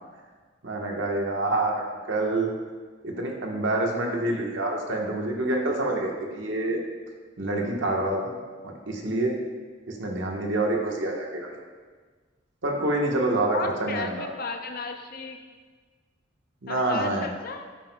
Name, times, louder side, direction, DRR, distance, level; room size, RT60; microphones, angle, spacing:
voice 1, 0.6-2.5 3.0-6.8 7.4-8.4 8.6-9.4 9.9-11.5 12.6-14.3 16.6-17.3, right 2 dB, 70° right, 0 dB, 1.1 m, -27 dB
voice 2, 13.5-15.4 16.7-17.7, left 3 dB, 50° left, 4 dB, 0.6 m, -34 dB
9.0 x 7.9 x 2.2 m, 1.4 s
head